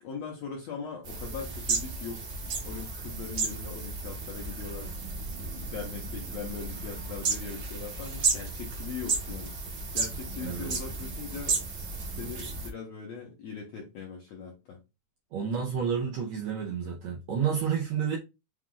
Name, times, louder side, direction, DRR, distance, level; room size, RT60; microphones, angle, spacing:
voice 1, 0.0-2.3 2.6-4.9 5.6-9.5 9.9-11.6 12.2-14.8, left 6 dB, 70° left, 1.7 m, -40 dB
sound 1, 1.0-12.7, right 4 dB, 60° right, 1.3 m, -33 dB
voice 2, 10.4-10.7 15.3-18.2, right 7 dB, 85° right, 1.5 m, -30 dB
6.0 x 2.4 x 3.8 m
omnidirectional pair, 4.1 m